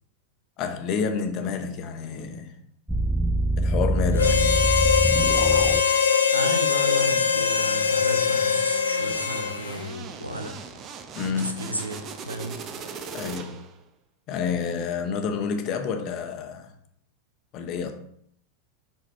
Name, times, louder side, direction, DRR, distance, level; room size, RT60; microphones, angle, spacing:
voice 1, 0.6-2.6 3.6-4.7 11.1-11.6 13.1-13.6 14.3-16.7 17.5-17.9, left 6 dB, 35° left, 0.9 m, -29 dB
sound 1, 2.9-5.8, right 1 dB, 5° right, 0.3 m, -24 dB
Harmonica, 4.2-9.8, left 7 dB, 70° left, 0.6 m, -22 dB
voice 2, 6.3-10.5 11.4-12.6, equal, 85° right, 0.9 m, -33 dB
sound 2, 7.0-13.8, right 5 dB, 30° right, 0.7 m, -40 dB
5.7 x 4.9 x 3.4 m
figure-of-eight pair, 90°, 0 cm